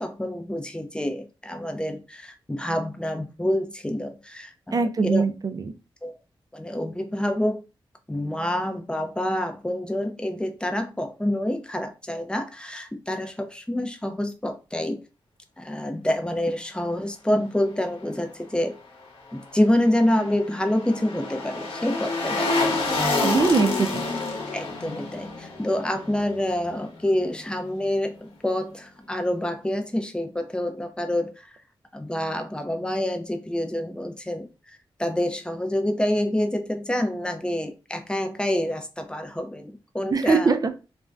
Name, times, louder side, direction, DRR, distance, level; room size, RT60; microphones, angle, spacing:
voice 1, 0.0-5.2 6.0-6.2 6.5-7.6 8.1-15.0 15.6-18.8 19.3-23.6 24.5-31.6 31.9-40.5, left 1 dB, 10° left, 6 dB, 0.5 m, -27 dB
voice 2, 4.7-5.6 23.2-24.0 40.1-40.7, right 4 dB, 40° right, 9 dB, 0.4 m, -21 dB
sound 1, 19.7-26.9 27.2-27.3, left 3 dB, 85° left, 0.9 m, -28 dB
2.5 x 2.1 x 3.3 m, 0.31 s
wide cardioid pair, 80°, 9 cm